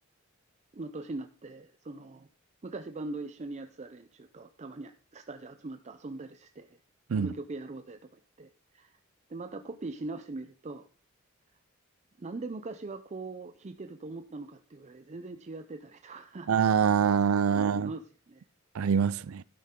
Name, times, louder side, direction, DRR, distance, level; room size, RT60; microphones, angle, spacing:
voice 1, 0.7-2.3 2.6-6.8 7.1-8.9 9.3-10.9 12.2-16.5 17.5-18.4, right 2 dB, 35° right, 0.5 m, -41 dB
voice 2, 16.5-17.9 18.7-19.4, right 7 dB, 85° right, 0.4 m, -25 dB
12.0 x 9.9 x 3.7 m
head